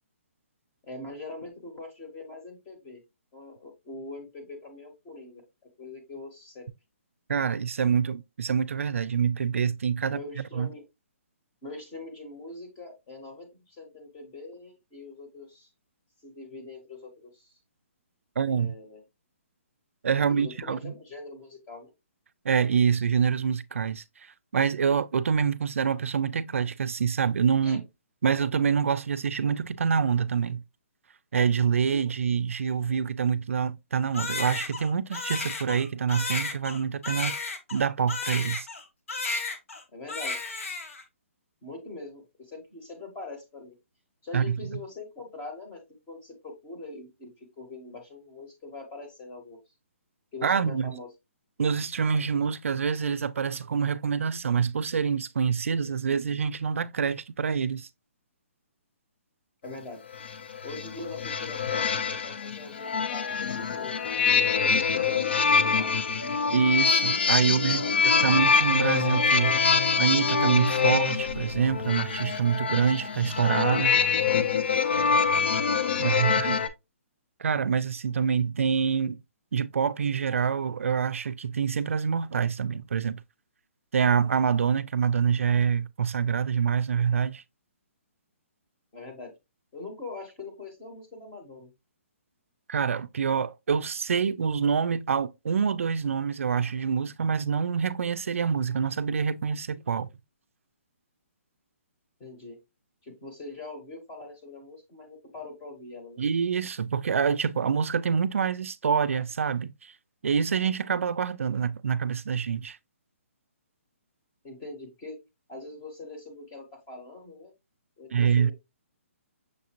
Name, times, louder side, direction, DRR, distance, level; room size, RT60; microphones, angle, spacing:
voice 1, 0.8-3.0 3.3-5.4 5.8-6.7 10.1-10.8 11.6-15.7 16.2-17.6 18.4-19.0 20.3-21.9 27.6-27.8 39.9-40.4 41.6-43.7 44.2-49.6 50.3-51.1 59.6-60.0 60.6-65.9 67.4-68.0 88.9-89.4 89.7-91.7 102.2-102.6 103.0-106.2 114.4-115.2 115.5-117.5 118.0-118.5, left 2 dB, 10° left, 0.9 m, -43 dB
voice 2, 7.3-10.2 10.5-10.7 18.4-18.7 20.0-20.9 22.4-27.8 28.2-30.6 31.3-37.4 37.7-38.7 44.3-44.6 50.4-50.9 51.6-57.9 66.5-69.6 70.0-74.0 76.0-76.7 77.4-79.2 79.5-83.2 83.9-87.4 92.7-100.1 106.2-109.9 110.2-112.8 118.1-118.5, right 6 dB, 70° right, 0.4 m, -26 dB
Crying sobbing, 34.1-38.8 39.1-39.8 40.1-41.0, left 3 dB, 70° left, 1.1 m, -33 dB
sound 1, 60.1-76.7, left 5 dB, 50° left, 0.5 m, -25 dB
6.5 x 2.5 x 2.8 m
hypercardioid pair, 180°, 7 cm